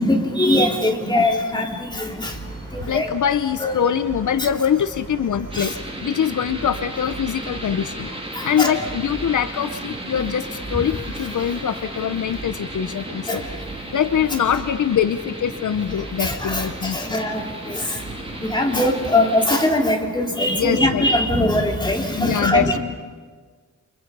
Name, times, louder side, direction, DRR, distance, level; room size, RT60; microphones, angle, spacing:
voice 1, 0.0-2.3 2.7-3.1 3.6-3.9 5.5-5.7 8.4-8.7 13.3-13.4 16.2-17.4 17.7-17.8 18.5-22.8, left 1 dB, 15° left, 1 dB, 2.6 m, -21 dB
sound 1, 2.2-18.6, right 2 dB, 40° right, 6.8 m, -39 dB
voice 2, 2.9-8.1 8.4-13.4 13.9-17.1 20.6-21.0 22.2-22.8, left 8 dB, 70° left, 12 dB, 0.7 m, -23 dB
sound 2, 5.5-19.7, right 1 dB, 20° right, 2.8 m, -35 dB
29.0 x 25.0 x 5.4 m, 1.5 s
wide cardioid pair, 170°, 32 cm